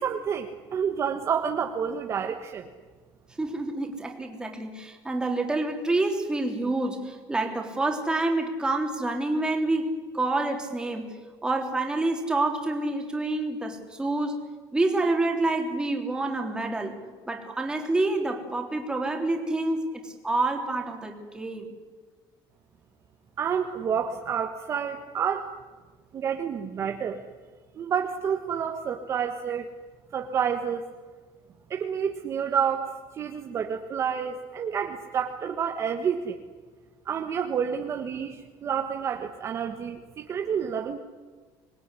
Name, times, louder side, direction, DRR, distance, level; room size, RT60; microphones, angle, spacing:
voice 1, 0.0-2.7 23.4-25.5 26.1-27.2 27.8-29.7 30.1-30.8 31.7-36.4 37.0-41.0, right 7 dB, 30° right, 4 dB, 1.5 m, -29 dB
voice 2, 3.4-11.2 11.4-14.4 14.7-17.0 17.2-21.7, right 2 dB, 10° right, 3 dB, 3.5 m, -28 dB
26.0 x 21.0 x 9.9 m, 1.4 s
cardioid pair, 170°, 9 cm